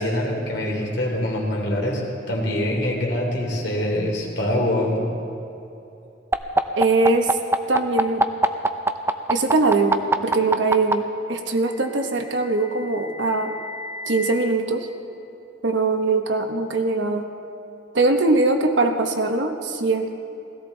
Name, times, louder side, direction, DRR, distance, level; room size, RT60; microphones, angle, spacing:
voice 1, 0.0-2.0 2.3-5.1, left 1 dB, 60° left, -1 dB, 3.0 m, -24 dB
sound 1, 6.3-10.9 12.1-14.3, right 2 dB, 15° right, 0.5 m, -23 dB
voice 2, 6.8-7.4 7.7-8.2 9.3-13.5 14.1-14.9 15.6-17.3 17.9-20.1, right 3 dB, 80° right, 5 dB, 1.1 m, -21 dB
17.0 x 15.5 x 4.0 m, 2.9 s
head